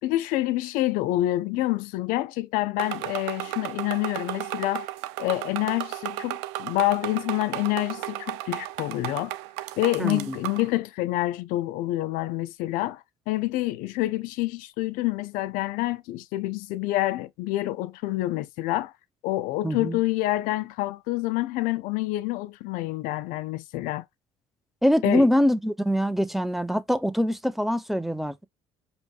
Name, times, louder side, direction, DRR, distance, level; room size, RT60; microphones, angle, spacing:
voice 1, 0.0-4.9 5.2-9.3 9.8-18.9 19.2-24.0 25.0-25.3, left 16 dB, 75° left, 0.4 m, -27 dB
sound 1, 2.8-10.7, right 16 dB, 85° right, 0.5 m, -34 dB
voice 2, 10.0-10.4 19.6-20.0 24.8-28.5, equal, ahead, 0.7 m, -24 dB
5.3 x 3.0 x 2.4 m
supercardioid pair, 65°, 14 cm